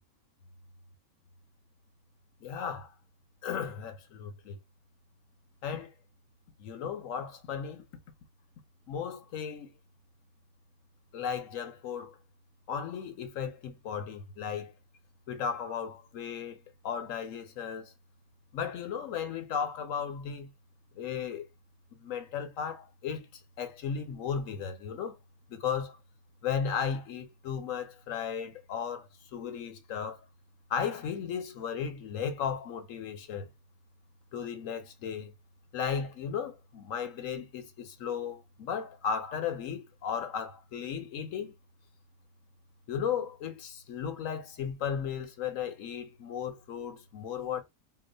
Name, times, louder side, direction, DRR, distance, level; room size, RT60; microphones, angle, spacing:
voice 1, 2.4-2.9 3.4-4.6 5.6-5.9 6.6-7.9 8.9-9.7 11.1-12.2 12.7-14.7 15.3-17.9 18.5-20.5 21.0-21.5 21.9-25.2 25.5-26.0 26.4-30.2 30.7-33.5 34.3-35.3 35.7-41.6 42.9-47.6, left 7 dB, 70° left, 1.0 m, -35 dB
2.9 x 2.1 x 3.8 m
omnidirectional pair, 1.5 m